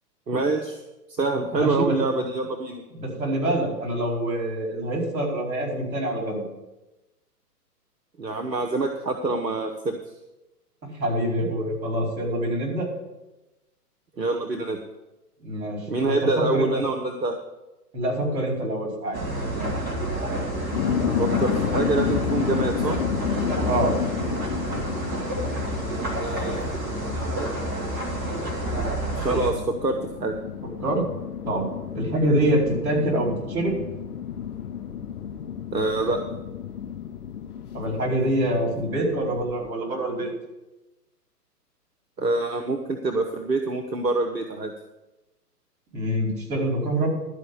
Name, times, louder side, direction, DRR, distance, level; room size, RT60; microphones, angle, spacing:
voice 1, 0.3-0.8 1.1-2.8 8.2-10.0 14.2-14.8 15.9-17.3 21.2-23.0 26.2-27.7 29.2-30.3 35.7-36.2 42.2-44.7, right 3 dB, 85° right, 4 dB, 1.1 m, -26 dB
voice 2, 1.5-2.0 2.9-6.4 10.8-12.9 15.4-16.7 17.9-19.2 23.6-24.0 30.8-31.0 31.4-33.8 37.7-40.3 45.9-47.1, right 1 dB, 60° right, -2 dB, 4.6 m, -25 dB
sound 1, 19.1-29.5, right 1 dB, 20° right, 2.0 m, -29 dB
sound 2, 20.7-39.7, left 8 dB, 65° left, 0.9 m, -32 dB
12.0 x 5.1 x 8.2 m, 1.0 s
figure-of-eight pair, 120°, 48 cm